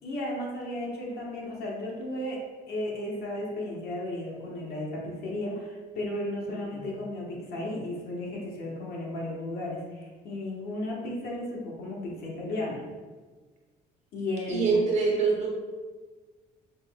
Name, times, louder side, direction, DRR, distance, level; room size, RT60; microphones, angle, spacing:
voice 1, 0.0-12.8 14.1-14.8, left 1 dB, 65° left, -3 dB, 1.2 m, -34 dB
voice 2, 6.5-6.9 14.5-15.5, right 4 dB, 40° right, -2 dB, 1.1 m, -25 dB
5.2 x 2.9 x 2.3 m, 1.4 s
cardioid pair, 110°, 17 cm